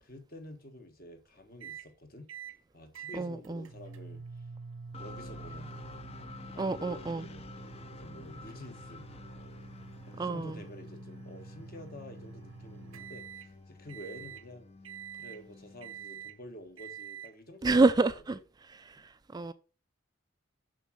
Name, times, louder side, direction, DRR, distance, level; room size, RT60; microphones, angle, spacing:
voice 1, 0.0-2.3 2.7-4.4 5.0-5.8 6.5-7.5 8.0-9.1 10.1-14.7 15.2-17.7 18.1-18.2, left 1 dB, 45° left, 1.5 m, -49 dB
sound 1, 1.6-1.9 2.3-2.6 2.9-13.5 13.9-14.4 14.8-15.4 15.8-16.4 16.8-17.3, right 6 dB, 80° right, 0.8 m, -47 dB
voice 2, 3.1-3.7 6.6-7.3 10.2-10.6 17.6-18.4 18.7-19.5, right 3 dB, 20° right, 0.3 m, -28 dB
sound 2, 4.9-16.7, left 3 dB, 30° left, 0.6 m, -50 dB
6.7 x 6.3 x 6.2 m
head